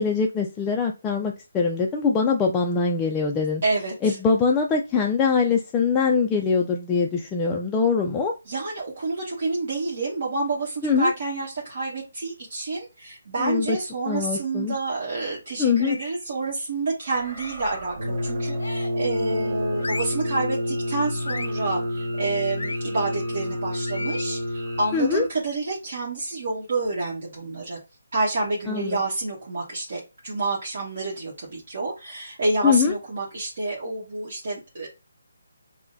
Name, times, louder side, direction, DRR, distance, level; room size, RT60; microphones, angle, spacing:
voice 1, 0.0-3.6 4.0-8.3 10.8-11.1 13.4-13.8 14.1-14.8 15.6-16.0 24.9-25.2 28.7-29.0 32.6-32.9, left 5 dB, 10° left, 0 dB, 0.3 m, -23 dB
voice 2, 3.6-4.2 8.5-27.8 28.1-34.9, right 3 dB, 50° right, -4 dB, 1.3 m, -28 dB
sound 1, 15.8-16.2 17.3-17.7 18.6-19.1 19.8-20.3 21.2-21.6 22.6-22.8 23.9-24.3, left 3 dB, 85° left, 0.5 m, -35 dB
sound 2, 17.0-25.3, right 3 dB, 30° right, 2.0 m, -43 dB
Brass instrument, 17.9-25.1, left 1 dB, 85° right, 1.0 m, -29 dB
5.8 x 2.1 x 2.7 m, 0.28 s
hypercardioid pair, 165°, 0 cm